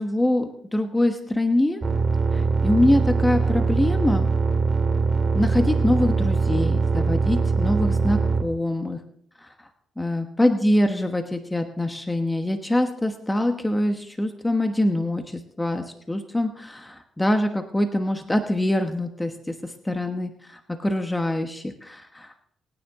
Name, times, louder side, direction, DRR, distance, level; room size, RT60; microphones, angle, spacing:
voice 1, 0.0-1.8 2.3-4.3 5.3-9.0 9.4-9.5 10.0-22.3, left 1 dB, 10° left, 6 dB, 1.1 m, -24 dB
sound 1, 1.8-8.4, right 4 dB, 30° right, 2.0 m, -22 dB
25.0 x 9.6 x 3.7 m, 0.69 s
cardioid pair, 90°, 0 cm